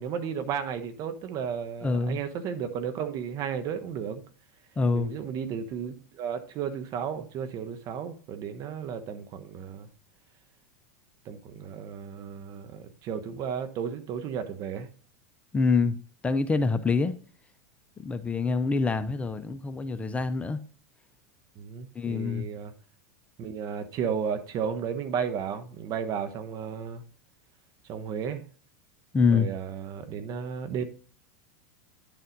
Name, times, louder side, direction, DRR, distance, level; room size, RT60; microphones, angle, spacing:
voice 1, 0.0-4.2 4.9-9.9 11.3-14.9 21.6-22.7 23.4-27.0 27.9-28.4 29.3-30.8, right 7 dB, 45° right, 1.1 m, -33 dB
voice 2, 1.8-2.2 4.8-5.1 15.5-16.0 16.2-17.1 18.0-20.6 22.0-22.5 29.1-29.5, left 4 dB, 15° left, 0.6 m, -25 dB
10.5 x 4.1 x 3.9 m
hypercardioid pair, 100°, 8 cm